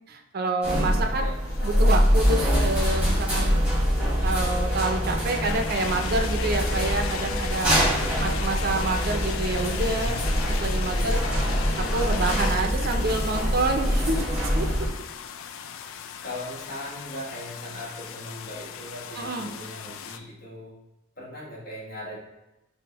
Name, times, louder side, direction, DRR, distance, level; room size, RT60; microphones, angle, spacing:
voice 1, 0.1-1.3 1.6-3.6 4.2-7.9 8.2-10.2 10.6-11.2 11.8-14.7 19.2-19.5, right 2 dB, 50° right, 4 dB, 0.4 m, -28 dB
sound 1, 0.6-14.9, equal, 5° right, 1.2 m, -24 dB
voice 2, 0.9-1.4 7.6-8.7 9.9-10.2 10.9-11.8 14.6-14.9 16.2-20.8 21.2-22.2, left 1 dB, 45° left, -4 dB, 1.1 m, -39 dB
sound 2, 1.2-20.2, left 7 dB, 75° left, 0.3 m, -37 dB
6.0 x 2.1 x 3.0 m, 0.97 s
head